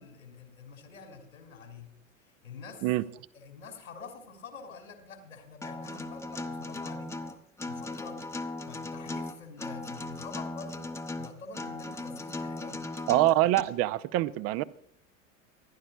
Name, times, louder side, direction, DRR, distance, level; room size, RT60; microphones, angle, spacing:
voice 1, 0.0-1.9 2.2-2.9 3.3-7.3 7.7-8.2 8.7-12.8, left 4 dB, 80° left, 2.5 m, -47 dB
Acoustic guitar, 5.6-13.6, left 2 dB, 5° left, 0.8 m, -37 dB
voice 2, 13.1-14.6, right 15 dB, 40° right, 0.6 m, -25 dB
26.5 x 11.0 x 2.3 m
figure-of-eight pair, 75°, 39 cm